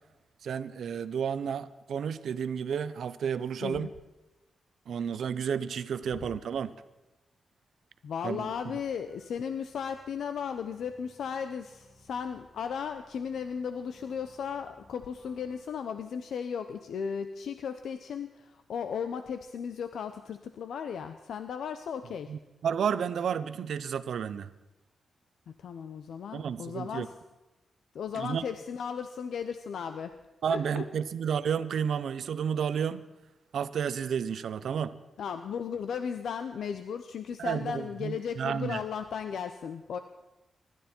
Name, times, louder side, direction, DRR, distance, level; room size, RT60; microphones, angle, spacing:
voice 1, 0.4-3.9 4.9-6.7 8.2-8.5 22.3-24.5 26.3-27.1 28.1-28.4 30.4-33.0 33.5-35.0 37.4-38.8, right 7 dB, 75° right, 14 dB, 0.7 m, -31 dB
voice 2, 3.6-3.9 8.0-22.3 25.5-27.1 27.9-30.2 30.5-30.9 35.2-40.0, left 7 dB, 85° left, 9 dB, 0.7 m, -36 dB
sound 1, 8.4-15.6, equal, 10° left, 6.9 m, -62 dB
25.5 x 12.0 x 4.5 m, 1.0 s
wide cardioid pair, 120°, 0 cm